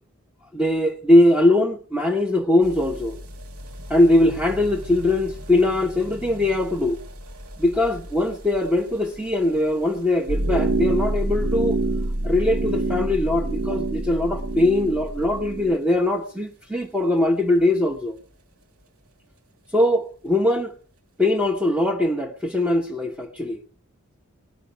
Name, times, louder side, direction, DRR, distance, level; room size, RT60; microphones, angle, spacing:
voice 1, 0.5-3.2 3.9-7.0 7.6-11.8 12.2-18.2 19.7-20.7 21.2-23.6, left 1 dB, 5° right, 0.9 m, -21 dB
sound 1, 2.6-19.4 19.6-19.7 19.9-20.0 20.3-20.4 20.6-20.7 21.4-21.5, equal, 80° right, 2.9 m, -43 dB
sound 2, 10.3-15.8, right 2 dB, 65° right, 0.8 m, -26 dB
18.5 x 12.0 x 5.7 m
head